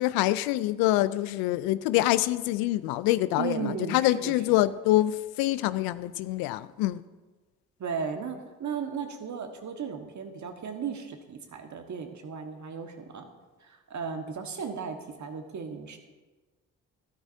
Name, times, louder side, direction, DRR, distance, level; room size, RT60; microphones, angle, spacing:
voice 1, 0.0-3.6 3.9-7.0, left 15 dB, 75° left, 0.5 m, -25 dB
voice 2, 3.4-4.6 7.8-13.3 13.6-16.0, right 6 dB, 50° right, 1.6 m, -36 dB
13.5 x 12.0 x 2.7 m
hypercardioid pair, 45°, 37 cm